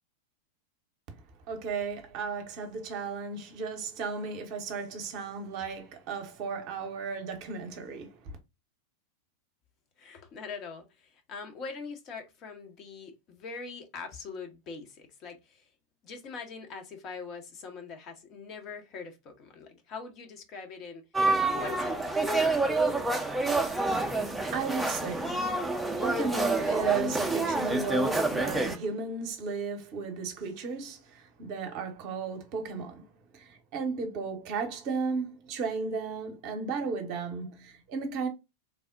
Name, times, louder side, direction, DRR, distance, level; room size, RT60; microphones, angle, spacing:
voice 1, 1.5-8.2 23.9-24.1 24.5-33.1 33.3-38.3, right 4 dB, 45° right, 0.8 m, -35 dB
voice 2, 10.0-15.6 16.0-21.0 21.5-22.4, left 5 dB, 35° left, 0.7 m, -43 dB
sound 1, 21.1-28.8, right 2 dB, 5° right, 0.5 m, -28 dB
3.3 x 2.0 x 2.4 m
figure-of-eight pair, 90°, 0 cm